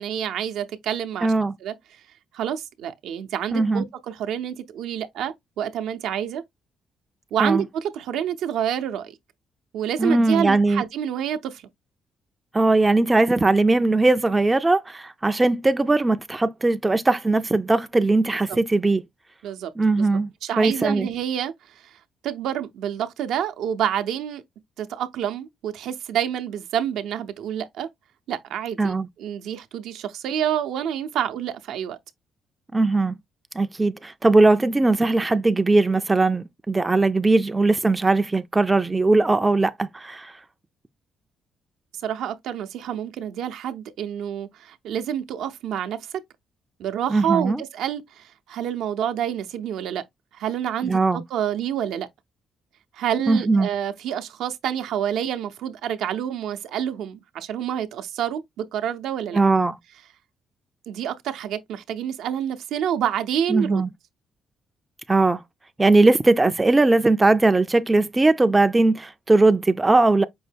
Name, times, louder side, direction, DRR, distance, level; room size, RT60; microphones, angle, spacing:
voice 1, 0.0-1.3 1.6-2.0 2.3-6.4 7.3-9.1 9.7-11.6 19.4-19.7 20.0-20.1 20.4-21.5 21.8-21.9 22.2-24.4 24.8-27.9 28.3-32.0 42.0-46.0 46.8-50.0 50.3-52.1 52.9-59.4 60.9-63.8, right 9 dB, 85° right, 0.5 m, -28 dB
voice 2, 1.2-1.5 3.5-3.9 7.4-7.6 10.0-10.8 12.5-19.0 19.8-20.3 20.6-21.1 28.8-29.1 32.7-33.2 33.6-40.3 47.1-47.6 50.8-51.2 53.3-53.7 59.3-59.8 63.5-63.9 65.1-65.4 65.8-70.2, right 2 dB, 20° right, 0.3 m, -19 dB
5.3 x 2.1 x 3.3 m
cardioid pair, 90°, 0 cm